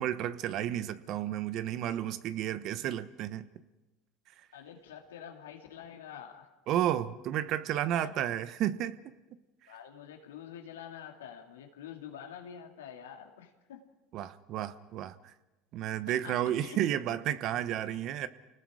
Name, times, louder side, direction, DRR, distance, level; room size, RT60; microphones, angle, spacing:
voice 1, 0.0-3.5 6.7-9.0 14.1-15.3 15.7-18.3, right 11 dB, 60° right, 13 dB, 1.1 m, -32 dB
voice 2, 4.5-6.5 8.0-8.2 9.7-13.9 16.1-16.8, left 9 dB, 90° left, 3 dB, 2.4 m, -47 dB
29.5 x 19.0 x 5.0 m, 1.1 s
hypercardioid pair, 80°, 0 cm